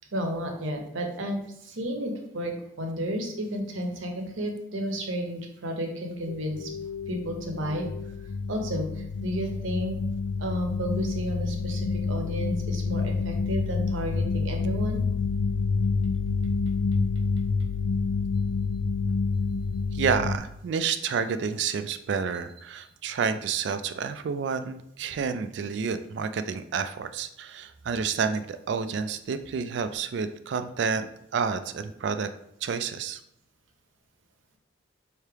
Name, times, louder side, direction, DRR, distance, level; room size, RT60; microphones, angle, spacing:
voice 1, 0.1-6.7 7.1-7.9 8.5-8.9 9.2-10.0 10.4-15.0, equal, 75° right, 2 dB, 0.8 m, -32 dB
sound 1, 6.3-20.4, left 4 dB, 90° left, 0.4 m, -28 dB
voice 2, 19.9-32.3 32.6-33.2, right 6 dB, 60° right, 10 dB, 0.3 m, -29 dB
3.3 x 2.8 x 4.6 m, 0.76 s
head